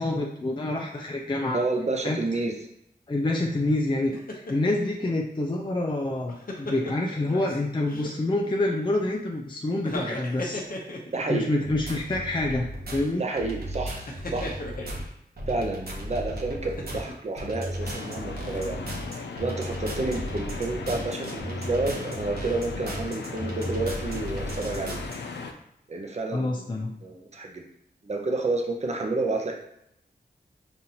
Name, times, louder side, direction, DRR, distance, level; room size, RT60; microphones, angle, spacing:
voice 1, 0.0-1.6 2.0-2.2 3.1-10.6 11.3-13.2 26.3-26.9, left 2 dB, 25° left, 1 dB, 0.4 m, -27 dB
voice 2, 1.5-2.7 11.1-11.5 13.2-14.0 14.3-14.6 15.5-18.8 19.2-25.0 25.9-27.6 28.0-29.5, right 3 dB, 40° right, 1 dB, 0.6 m, -30 dB
sound 1, 4.1-4.9 6.0-7.6 7.9-8.5 9.8-11.3 12.0-12.1 14.1-15.0 16.6-17.3 17.7-17.8, left 1 dB, 55° left, 0.8 m, -36 dB
sound 2, 11.6-25.2, equal, 65° right, 1.0 m, -36 dB
sound 3, 17.8-25.5, left 4 dB, 85° left, 0.4 m, -37 dB
5.4 x 2.5 x 2.8 m, 0.79 s
wide cardioid pair, 60°, 17 cm